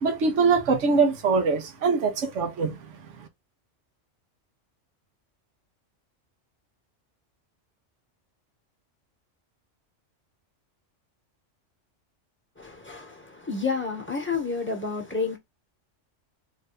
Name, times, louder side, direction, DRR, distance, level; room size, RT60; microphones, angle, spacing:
voice 1, 0.0-2.7, right 4 dB, 70° right, 1.2 m, -23 dB
voice 2, 12.6-15.4, left 4 dB, 10° left, 1.1 m, -30 dB
3.2 x 2.6 x 4.0 m
omnidirectional pair, 1.3 m